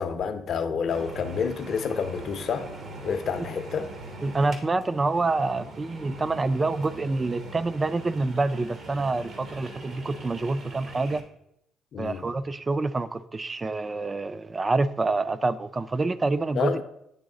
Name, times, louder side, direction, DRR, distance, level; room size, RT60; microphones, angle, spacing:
voice 1, 0.0-2.7 3.0-3.9 11.9-12.2 16.5-16.8, left 6 dB, 60° left, 0.6 m, -29 dB
sound 1, 0.9-11.2, right 2 dB, 60° right, 1.1 m, -42 dB
voice 2, 4.2-11.2 12.0-16.7, right 3 dB, 30° right, 0.3 m, -27 dB
8.9 x 3.1 x 3.8 m
supercardioid pair, 70°, 0 cm